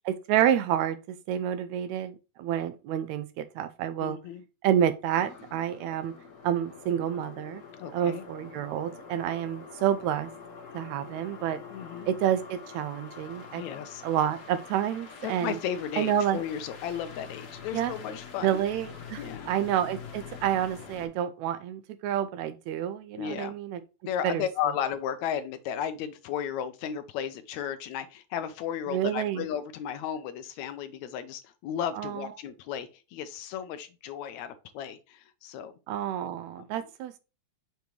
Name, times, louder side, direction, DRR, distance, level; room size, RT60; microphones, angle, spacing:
voice 1, 0.1-4.2 4.6-6.1 6.4-7.6 7.9-10.3 10.7-11.6 12.1-13.6 14.0-15.6 16.0-16.4 17.7-17.9 18.4-23.8 24.2-24.4 28.9-29.5 32.0-32.3 35.9-37.2, right 10 dB, 80° right, 1.8 m, -29 dB
voice 2, 4.0-4.4 7.8-8.2 11.7-12.1 13.5-14.0 15.2-18.6 19.2-19.5 23.2-23.6 24.0-35.7, left 9 dB, 75° left, 1.9 m, -34 dB
sound 1, 5.2-21.1, left 6 dB, 60° left, 2.3 m, -45 dB
6.8 x 5.2 x 3.0 m
omnidirectional pair, 3.5 m